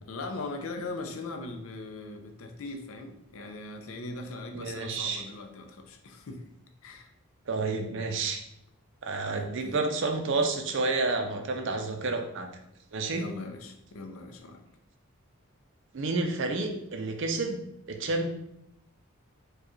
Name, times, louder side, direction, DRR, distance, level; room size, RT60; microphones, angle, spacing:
voice 1, 0.0-6.4 6.8-7.1 9.3-9.8 13.1-14.6, left 2 dB, 70° left, 5 dB, 0.5 m, -40 dB
voice 2, 4.5-5.2 7.5-8.4 9.0-12.5 12.9-13.2 15.9-17.6 17.9-18.3, right 3 dB, 55° right, 4 dB, 0.5 m, -30 dB
4.6 x 2.3 x 3.1 m, 0.78 s
head